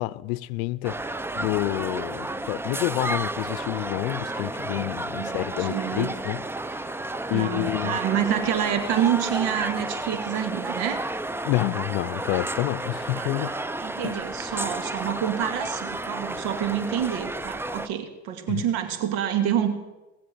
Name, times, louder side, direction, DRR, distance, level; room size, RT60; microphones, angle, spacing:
voice 1, 0.0-6.4 6.7-7.0 7.3-8.0 11.4-13.6 14.0-14.2 18.5-18.6, left 19 dB, 75° left, 0.6 m, -28 dB
sound 1, 0.8-17.9, right 2 dB, 5° right, 0.5 m, -32 dB
voice 2, 5.2-6.1 7.3-11.1 13.2-19.7, right 9 dB, 70° right, 2.2 m, -27 dB
20.0 x 7.6 x 7.7 m
hypercardioid pair, 85°, 41 cm